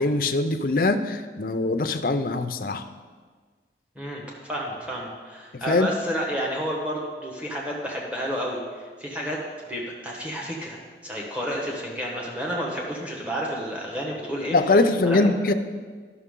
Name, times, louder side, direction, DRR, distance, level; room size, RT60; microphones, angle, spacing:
voice 1, 0.0-2.8 5.7-5.9 14.5-15.5, left 2 dB, 50° left, 9 dB, 0.5 m, -22 dB
voice 2, 3.9-9.4 9.7-14.6 15.0-15.4, equal, 10° right, -3 dB, 1.3 m, -31 dB
12.5 x 6.3 x 3.8 m, 1.5 s
head